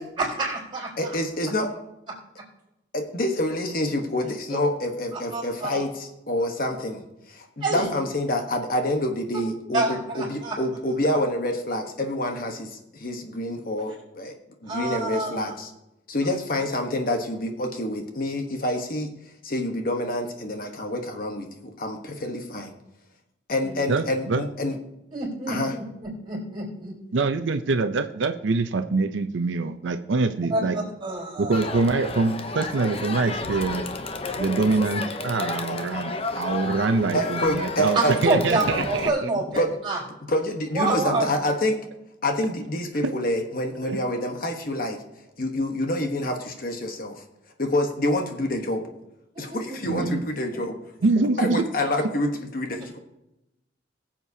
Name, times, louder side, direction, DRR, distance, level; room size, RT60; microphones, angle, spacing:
voice 1, 0.2-1.1 4.5-4.6 5.3-5.8 7.6-7.9 9.7-10.6 14.7-15.5 23.6-23.8 25.1-26.9 30.5-31.5 37.9-40.0 40.7-41.6 49.3-50.1 50.5-50.6, right 2 dB, 25° right, -4 dB, 4.2 m, -28 dB
voice 2, 1.0-1.7 2.9-7.0 7.3-14.3 14.6-15.7 16.1-19.1 19.4-22.7 23.5-24.8 25.5-25.7 37.1-38.2 39.6-39.7 40.3-41.8 42.2-45.0 45.4-47.2 47.6-48.8 49.4-50.8 51.4-53.0, left 1 dB, 50° left, 4 dB, 1.1 m, -27 dB
voice 3, 23.9-24.4 27.1-30.8 31.4-33.9 34.4-39.3 43.0-43.1 43.8-44.0 49.9-50.2 51.0-51.7, right 3 dB, 85° right, 9 dB, 0.6 m, -24 dB
Crowd, 31.5-39.1, left 3 dB, 30° left, 0.7 m, -32 dB
21.0 x 7.3 x 2.8 m, 0.91 s
head